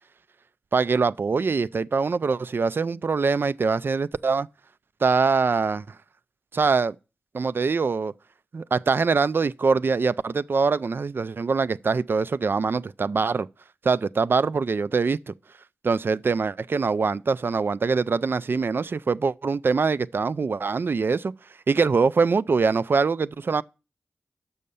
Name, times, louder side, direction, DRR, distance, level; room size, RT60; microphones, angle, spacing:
voice 1, 0.7-4.5 5.0-5.8 6.5-7.0 7.3-8.1 8.5-13.5 13.8-15.3 15.8-21.3 21.7-23.6, right 4 dB, 55° right, 0.3 m, -23 dB
6.4 x 5.5 x 6.9 m
cardioid pair, 45°, 4 cm